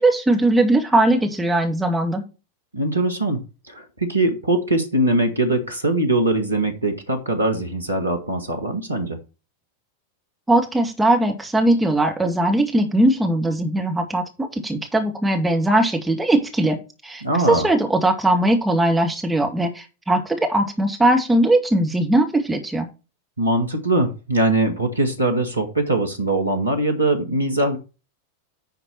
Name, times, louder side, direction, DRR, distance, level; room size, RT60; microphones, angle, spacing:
voice 1, 0.0-2.2 10.5-14.2 14.5-16.8 17.0-17.2 17.5-22.9, right 1 dB, 5° right, 2 dB, 2.0 m, -19 dB
voice 2, 2.7-9.2 17.2-17.7 23.4-27.8, right 2 dB, 80° right, 6 dB, 1.9 m, -22 dB
10.5 x 4.6 x 4.5 m, 0.31 s
figure-of-eight pair, 90°, 0 cm